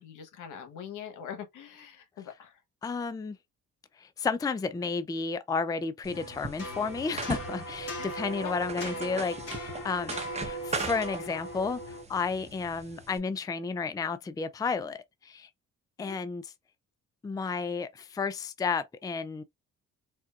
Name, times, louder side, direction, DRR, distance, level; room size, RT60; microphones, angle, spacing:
voice 1, 0.0-2.6 8.0-8.1 8.4-8.5 16.0-16.2, left 8 dB, 85° left, 1.1 m, -43 dB
voice 2, 2.8-3.4 4.0-10.2 10.4-15.5 16.0-16.5 17.2-19.4, left 4 dB, 15° left, 0.4 m, -32 dB
sound 1, 6.0-13.2, right 3 dB, 20° right, 0.8 m, -40 dB
sound 2, 6.1-12.0, right 1 dB, 50° left, 1.9 m, -39 dB
4.3 x 2.4 x 2.4 m
cardioid pair, 90°, 30 cm